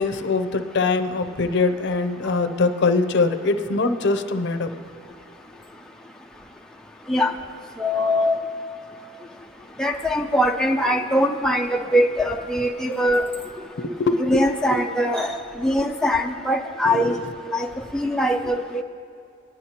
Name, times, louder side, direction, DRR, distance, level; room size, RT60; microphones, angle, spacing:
voice 1, 0.0-4.7 13.8-14.4 14.7-14.8 16.8-17.2, left 3 dB, 60° left, 9 dB, 0.6 m, -22 dB
voice 2, 7.8-8.4 9.8-13.2 14.2-15.4 15.6-17.2 17.5-17.7 17.9-18.8, equal, 5° left, 1 dB, 0.4 m, -22 dB
18.0 x 10.5 x 2.9 m, 2.5 s
head